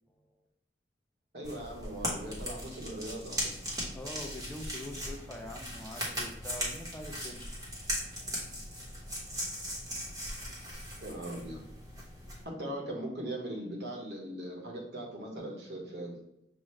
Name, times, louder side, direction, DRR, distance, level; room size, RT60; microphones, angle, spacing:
voice 1, 1.3-3.5 10.9-11.6 12.4-16.1, right 1 dB, 65° right, -1 dB, 1.2 m, -39 dB
sound 1, 1.4-12.4, equal, 20° right, 1.1 m, -38 dB
voice 2, 3.9-7.6, left 1 dB, 10° left, 1 dB, 0.4 m, -44 dB
6.2 x 2.4 x 3.1 m, 0.81 s
head